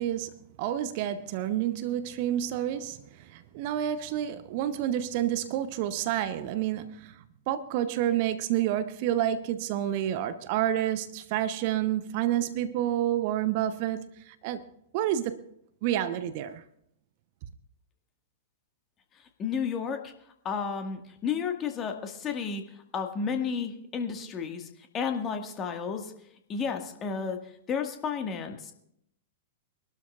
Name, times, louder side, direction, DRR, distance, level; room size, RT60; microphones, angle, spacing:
voice 1, 0.0-14.6 14.9-15.4 15.8-16.6, right 11 dB, 45° right, 0.8 m, -29 dB
voice 2, 19.4-20.1 20.5-22.6 22.9-24.7 24.9-26.1 26.5-27.4 27.7-28.7, left 6 dB, 25° left, 1.8 m, -32 dB
25.0 x 12.5 x 2.5 m
figure-of-eight pair, 100°, 0 cm